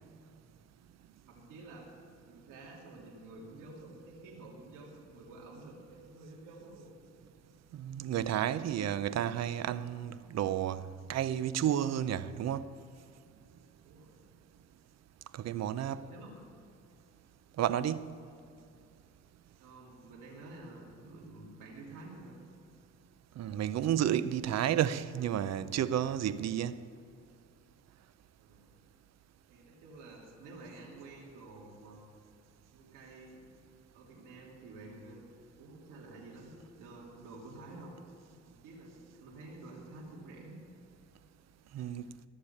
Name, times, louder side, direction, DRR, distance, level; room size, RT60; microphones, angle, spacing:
voice 1, 1.2-1.9 2.3-6.9 7.3-7.5 13.8-14.2 15.8-16.6 18.1-18.4 19.6-22.4 28.4-28.8 29.5-32.0 32.7-33.4 33.9-35.2 35.6-37.9 38.5-40.6 41.8-41.9, right 2 dB, 90° right, 2.8 m, -50 dB
voice 2, 7.7-10.8 11.1-12.7 15.3-16.0 17.6-18.1 23.4-26.8 41.7-42.1, right 10 dB, 60° right, 0.6 m, -31 dB
15.0 x 6.9 x 8.6 m
cardioid pair, 90°, 30 cm